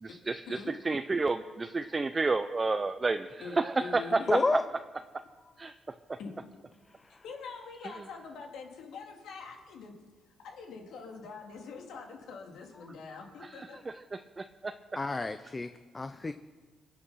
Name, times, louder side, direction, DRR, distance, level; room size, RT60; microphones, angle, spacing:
voice 1, 0.0-0.6 0.8-4.2 5.6-5.7 13.6-14.7, right 3 dB, 25° right, 9 dB, 0.6 m, -31 dB
voice 2, 3.4-4.5 6.2-6.3 7.2-10.0 10.4-13.8, left 5 dB, 80° left, 2 dB, 2.7 m, -44 dB
voice 3, 4.3-4.6 6.9-7.2 14.9-16.3, left 3 dB, 25° left, 10 dB, 0.6 m, -31 dB
23.5 x 8.0 x 5.7 m, 1.4 s
cardioid pair, 90°, 0 cm